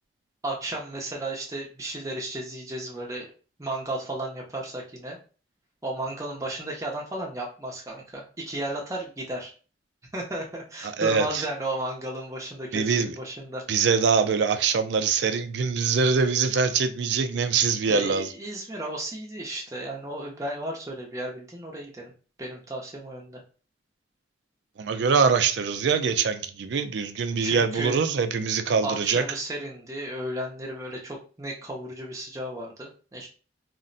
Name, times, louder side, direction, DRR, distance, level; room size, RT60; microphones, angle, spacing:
voice 1, 0.4-3.3 3.6-5.2 5.8-9.5 10.1-13.6 17.9-22.1 22.4-23.4 27.4-28.0 28.8-33.3, right 1 dB, 15° right, 0.6 m, -34 dB
voice 2, 10.8-11.4 12.7-13.1 13.7-18.3 24.8-29.2, right 5 dB, 70° right, 0.4 m, -23 dB
2.5 x 2.0 x 3.8 m
head